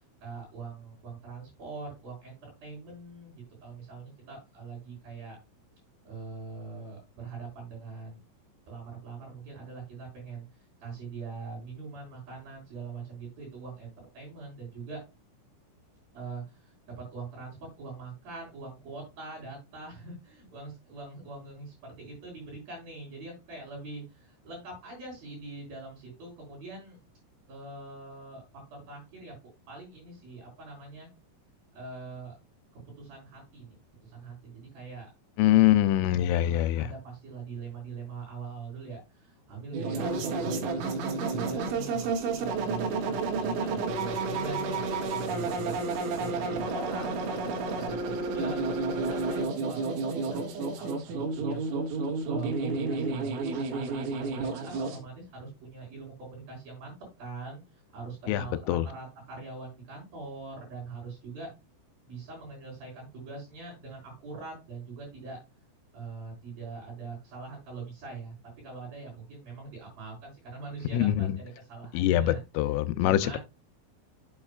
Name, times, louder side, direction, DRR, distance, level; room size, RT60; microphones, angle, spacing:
voice 1, 0.2-5.4 6.0-8.2 8.7-15.0 16.1-27.0 27.5-28.4 28.7-29.3 29.7-31.1 31.7-32.3 32.9-35.1 35.5-35.8 36.1-50.4 50.8-51.8 52.3-61.5 62.0-65.4 65.9-72.4 73.0-73.4, right 4 dB, 50° right, 5.8 m, -43 dB
voice 2, 35.4-36.9 58.3-58.9 70.9-71.4 71.9-73.4, left 13 dB, 85° left, 3.2 m, -24 dB
sound 1, 39.7-55.0, right 3 dB, 75° right, 4.0 m, -31 dB
8.7 x 8.0 x 2.4 m
omnidirectional pair, 5.7 m